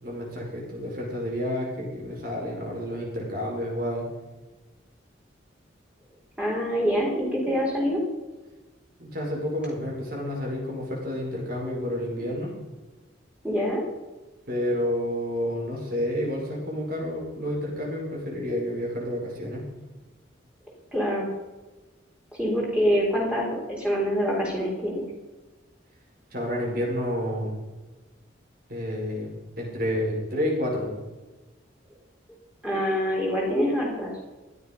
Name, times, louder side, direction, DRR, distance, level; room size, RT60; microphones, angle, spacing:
voice 1, 0.0-4.1 9.0-12.5 14.5-19.7 26.3-27.6 28.7-30.9, equal, 50° right, -2 dB, 5.8 m, -30 dB
voice 2, 6.4-8.0 13.4-13.8 20.9-21.3 22.3-25.0 32.6-34.1, equal, 5° right, -4 dB, 4.0 m, -25 dB
16.0 x 11.0 x 5.4 m, 1.2 s
head